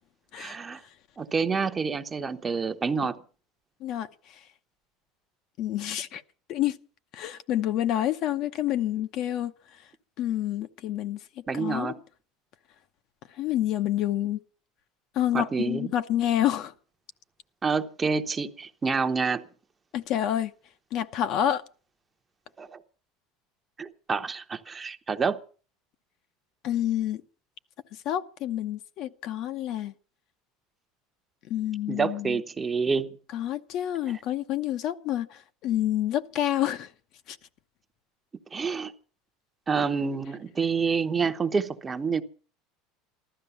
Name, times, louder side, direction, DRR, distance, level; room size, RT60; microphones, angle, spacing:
voice 1, 0.4-0.8 1.2-3.2 11.5-12.0 15.3-15.9 17.6-19.4 22.6-22.8 23.8-25.4 31.9-33.2 34.1-34.2 38.5-38.9 39.7-42.2, right 5 dB, 20° right, 0.9 m, -28 dB
voice 2, 5.6-6.2 6.5-6.8 7.1-9.5 10.2-11.2 11.5-11.9 13.4-14.4 15.1-16.7 19.9-20.5 20.9-21.6 26.6-27.2 28.0-29.9 31.5-32.4 33.3-36.9 37.3-37.4, left 12 dB, 50° left, 0.8 m, -28 dB
15.0 x 12.5 x 6.9 m
cardioid pair, 150°, 0 cm